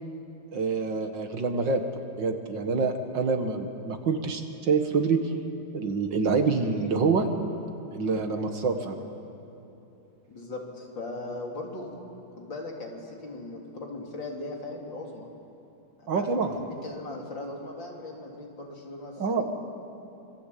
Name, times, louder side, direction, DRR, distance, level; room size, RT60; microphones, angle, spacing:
voice 1, 0.5-1.8 2.2-5.2 5.7-7.3 7.9-9.0 16.1-16.6 19.2-19.4, right 4 dB, 70° right, 5 dB, 2.4 m, -26 dB
voice 2, 10.3-12.0 12.4-15.3 16.0-19.4, left 2 dB, 70° left, -1 dB, 4.1 m, -39 dB
25.5 x 24.5 x 8.6 m, 3.0 s
omnidirectional pair, 2.1 m